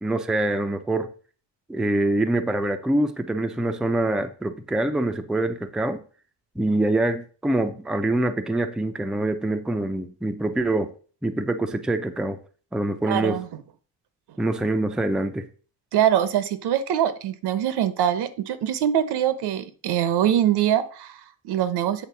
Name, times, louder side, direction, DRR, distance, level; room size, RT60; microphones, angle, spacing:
voice 1, 0.0-1.1 1.7-6.0 6.6-10.9 11.2-12.4 12.7-13.4 14.4-15.5, right 1 dB, ahead, 0.4 m, -25 dB
voice 2, 13.1-13.5 15.9-22.0, right 10 dB, 85° right, 1.0 m, -23 dB
8.2 x 3.7 x 5.8 m
cardioid pair, 160°, 39 cm